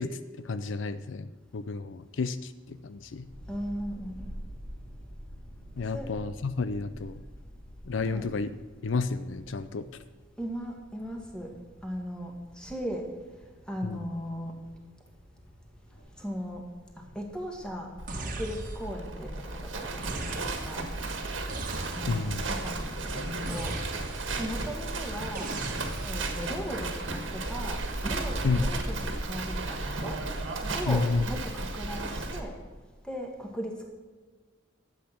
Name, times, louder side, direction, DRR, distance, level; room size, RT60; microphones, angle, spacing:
voice 1, 0.0-3.3 5.8-7.2 7.8-8.5 8.8-10.0 13.8-14.0 22.1-22.4 28.4-28.7 30.9-31.2, left 4 dB, 75° left, 13 dB, 0.5 m, -31 dB
sound 1, 3.2-22.3, equal, 90° left, 3.6 m, -49 dB
voice 2, 3.5-4.3 5.9-6.1 8.1-8.3 10.4-11.5 11.8-12.3 12.6-13.0 13.7-14.5 16.2-16.6 17.2-17.9 18.2-19.3 19.6-20.8 21.9-23.7 24.4-25.5 26.0-27.2 27.5-27.8 28.0-29.0 29.3-30.2 30.7-32.5 33.1-33.8, equal, 5° left, 1 dB, 2.0 m, -37 dB
Livestock farm animals working animals, 18.0-32.4, right 2 dB, 80° right, 1.6 m, -34 dB
sound 2, 18.1-19.0 20.0-20.9 21.5-22.4 23.5-24.4 25.3-26.3, right 2 dB, 45° right, 1.4 m, -38 dB
12.0 x 8.3 x 6.0 m, 1.4 s
head